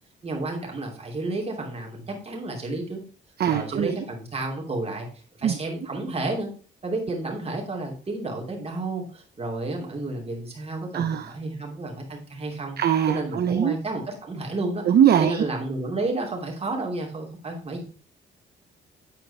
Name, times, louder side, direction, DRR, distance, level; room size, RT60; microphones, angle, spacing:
voice 1, 0.2-3.0 3.5-5.1 5.4-6.5 6.8-12.8 13.1-14.8 15.2-17.8, right 2 dB, 30° right, 0 dB, 2.9 m, -31 dB
voice 2, 3.4-4.0 5.4-5.5 10.9-11.3 12.8-13.7 14.9-15.4, right 9 dB, 55° right, 9 dB, 0.6 m, -21 dB
9.3 x 4.5 x 4.2 m, 0.39 s
cardioid pair, 90°, 20 cm